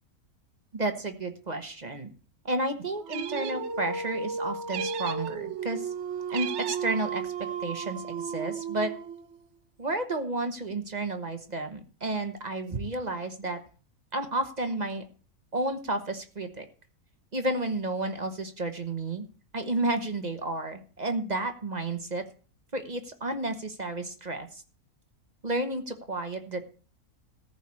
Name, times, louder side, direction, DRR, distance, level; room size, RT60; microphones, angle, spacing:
voice 1, 0.7-2.1 2.4-5.9 6.3-7.3 7.6-8.9 9.8-13.6 14.1-15.0 15.5-16.6 17.3-19.2 19.5-22.2 22.7-24.6 25.4-26.6, right 2 dB, 30° right, 6 dB, 1.2 m, -31 dB
Dog, 3.0-9.4, right 5 dB, 55° right, 1.1 m, -34 dB
sound 1, 3.1-3.7 4.7-5.3 6.3-7.0, right 10 dB, 85° right, 1.2 m, -37 dB
14.0 x 4.9 x 8.6 m, 0.39 s
omnidirectional pair, 1.6 m